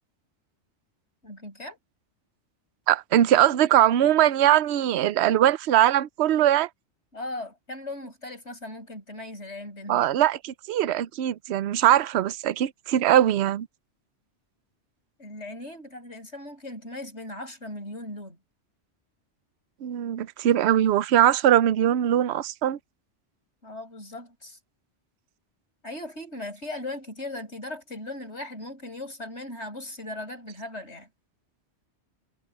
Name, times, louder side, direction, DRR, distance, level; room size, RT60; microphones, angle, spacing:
voice 1, 1.2-1.8 7.1-10.1 15.2-18.4 23.6-24.6 25.8-31.1, left 2 dB, 70° left, 8.0 m, -38 dB
voice 2, 2.9-6.7 9.9-13.7 19.8-22.8, right 11 dB, 70° right, 0.9 m, -21 dB
omnidirectional pair, 1.2 m